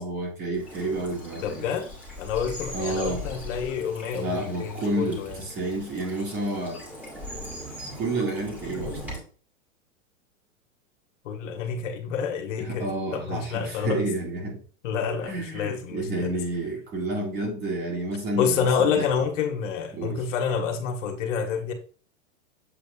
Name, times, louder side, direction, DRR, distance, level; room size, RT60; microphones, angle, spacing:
voice 1, 0.0-1.7 2.7-3.2 4.1-6.8 7.9-9.0 12.6-14.6 15.2-19.1 19.9-20.2, right 2 dB, 25° right, 2.0 m, -30 dB
Bird vocalization bird call bird song / Stream, 0.5-9.2, equal, 5° right, 1.9 m, -40 dB
voice 2, 1.4-1.9 2.2-5.4 11.2-14.0 14.8-16.3 18.4-21.7, left 6 dB, 65° left, 1.6 m, -28 dB
7.9 x 5.1 x 2.4 m
supercardioid pair, 150°, 40 cm